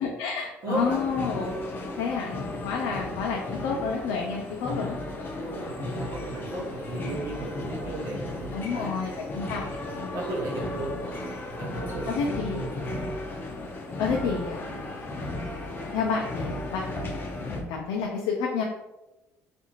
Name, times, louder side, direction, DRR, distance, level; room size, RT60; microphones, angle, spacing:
voice 1, 0.0-1.5 2.0-5.0 8.5-10.1 10.9-11.1 12.1-12.7 14.0-14.9 15.3-17.2 17.7-18.6, left 5 dB, 85° left, 0 dB, 0.4 m, -30 dB
voice 2, 0.6-1.0 3.0-3.1 5.4-9.0 10.1-11.2 11.5-13.1, right 2 dB, 65° right, -3 dB, 1.0 m, -35 dB
sound 1, 0.7-17.6, left 2 dB, 40° left, 0.6 m, -35 dB
2.5 x 2.4 x 2.9 m, 1.0 s
supercardioid pair, 80°, 6 cm